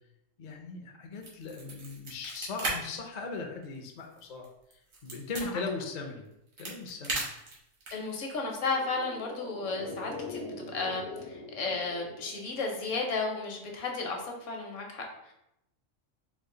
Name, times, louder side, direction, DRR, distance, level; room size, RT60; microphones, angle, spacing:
voice 1, 0.4-4.5 4.7-6.3 6.6-7.3, left 4 dB, 50° left, 2 dB, 0.5 m, -38 dB
sound 1, 1.2-2.7 3.1-3.2 3.6-5.4 6.2-8.1, right 3 dB, 80° right, 1.6 m, -36 dB
voice 2, 7.9-15.3, left 3 dB, 70° left, 1 dB, 1.1 m, -34 dB
sound 2, 8.7-13.2 13.5-13.6, left 3 dB, 85° left, 1.2 m, -43 dB
4.6 x 2.4 x 3.7 m, 0.84 s
omnidirectional pair, 1.4 m